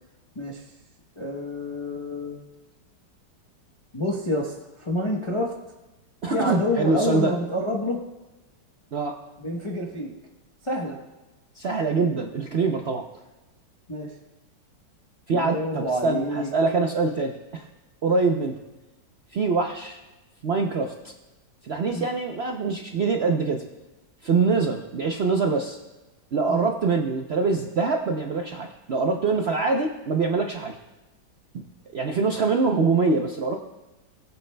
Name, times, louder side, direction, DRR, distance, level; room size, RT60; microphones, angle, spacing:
voice 1, 0.3-0.6 1.2-2.4 3.9-5.5 6.3-8.0 9.4-10.1 10.6-11.0 13.9-14.1 15.3-16.5 21.9-22.1 24.4-24.6 26.5-26.7, left 1 dB, 25° left, -2 dB, 0.7 m, -28 dB
voice 2, 6.2-7.3 8.9-9.2 11.5-13.0 15.3-17.7 18.0-18.6 19.3-20.0 20.4-21.1 21.6-23.6 24.2-25.8 26.3-30.8 31.5-31.6 31.9-33.6, right 4 dB, 65° right, 2 dB, 0.6 m, -24 dB
21.0 x 8.2 x 2.2 m, 1.1 s
omnidirectional pair, 2.0 m